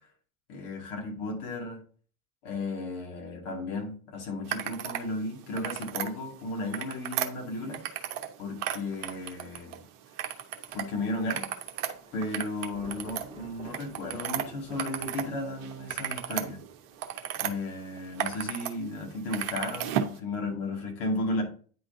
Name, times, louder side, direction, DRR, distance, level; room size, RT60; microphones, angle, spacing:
voice 1, 0.5-1.8 2.4-7.8 8.4-9.8 10.7-11.5 12.1-16.6 17.3-21.4, left 2 dB, 55° left, 2.3 m, -34 dB
sound 1, 4.5-5.1 5.4-6.1 6.6-8.3 8.6-9.8 10.2-10.8 11.2-15.3 15.6-17.5 18.0-18.7 19.0-20.2, right 10 dB, 45° right, 0.9 m, -34 dB
Thunder, 10.7-17.1, right 4 dB, 15° right, 1.6 m, -51 dB
9.2 x 3.9 x 3.9 m
figure-of-eight pair, 65°, 45 cm